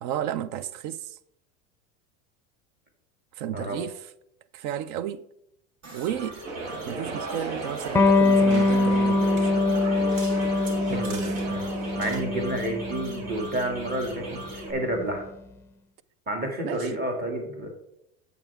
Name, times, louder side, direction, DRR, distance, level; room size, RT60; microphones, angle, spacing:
voice 1, 0.0-1.2 3.4-4.1 4.5-5.3 5.9-6.4 6.9-9.7 16.6-16.9, right 10 dB, 60° right, 0.6 m, -33 dB
sound 1, 5.8-14.7, right 2 dB, 45° right, 2.0 m, -40 dB
sound 2, 6.4-12.2, right 2 dB, 80° right, 1.8 m, -35 dB
Electric guitar, 7.9-15.1, left 2 dB, 5° left, 0.6 m, -24 dB
voice 2, 10.9-11.7 12.0-15.3 16.3-17.7, right 1 dB, 25° right, 2.4 m, -30 dB
8.8 x 7.4 x 3.6 m
supercardioid pair, 120°, 39 cm